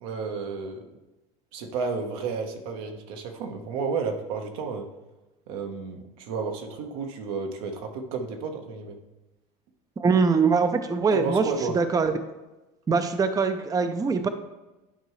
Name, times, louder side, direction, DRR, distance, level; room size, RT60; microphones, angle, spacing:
voice 1, 0.0-0.8 1.5-4.9 5.5-9.0 11.1-11.8, right 5 dB, 75° right, 3 dB, 1.1 m, -32 dB
voice 2, 10.0-11.5 11.7-12.1 12.9-14.3, right 5 dB, 20° right, 9 dB, 0.6 m, -22 dB
11.0 x 4.6 x 3.1 m, 1.0 s
hypercardioid pair, 90°, 20 cm